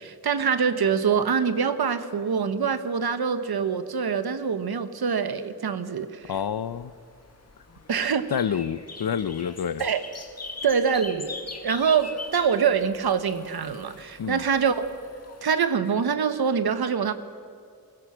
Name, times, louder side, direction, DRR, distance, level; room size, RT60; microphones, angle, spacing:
voice 1, 0.0-6.3 7.9-8.3 9.8-10.0 10.6-11.3 11.6-14.8 15.4-17.1, right 6 dB, 85° right, 10 dB, 1.2 m, -24 dB
sound 1, 6.2-15.4, left 3 dB, 45° left, 2.0 m, -42 dB
voice 2, 6.3-6.9 8.3-9.8 14.2-14.4, left 8 dB, 85° left, 15 dB, 0.8 m, -28 dB
23.0 x 20.5 x 6.2 m, 2.3 s
wide cardioid pair, 100°, 36 cm